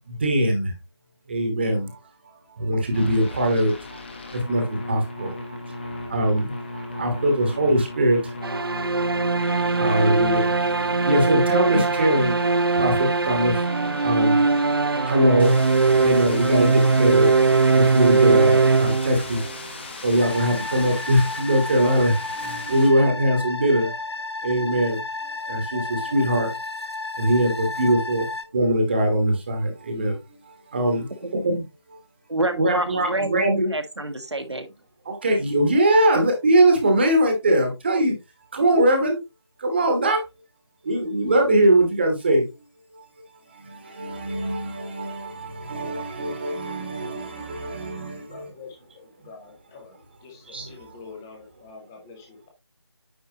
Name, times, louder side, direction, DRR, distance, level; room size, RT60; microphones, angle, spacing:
voice 1, 0.1-0.7 1.3-2.0 2.6-3.7 4.3-5.4 5.8-8.3 9.7-10.5 11.1-12.4 12.8-13.7 14.0-14.4 14.7-17.3 17.7-19.4 20.0-23.9 24.4-26.5 27.2-28.2 28.5-30.1 30.7-31.6 32.5-33.5 35.0-38.1 38.5-39.2 39.6-40.2 40.8-42.4 43.6-48.5 50.5-50.7, right 1 dB, 25° right, 1.3 m, -22 dB
sound 1, 2.9-22.9, left 2 dB, 25° left, 1.2 m, -37 dB
sound 2, 8.4-19.6, right 4 dB, 55° right, 0.4 m, -20 dB
sound 3, 20.2-28.4, left 3 dB, 65° left, 1.2 m, -32 dB
voice 2, 32.3-34.7, right 1 dB, 75° right, 1.7 m, -27 dB
voice 3, 48.3-49.9 50.2-52.5, left 4 dB, 5° left, 0.7 m, -45 dB
9.0 x 4.7 x 2.9 m
figure-of-eight pair, 165°, 14 cm